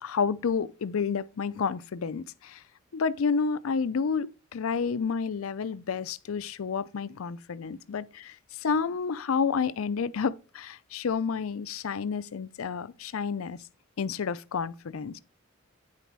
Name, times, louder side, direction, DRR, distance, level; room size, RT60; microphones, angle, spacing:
voice 1, 0.0-2.6 2.9-13.6 14.0-15.2, left 5 dB, 75° left, 0.5 m, -30 dB
9.7 x 4.0 x 4.6 m
head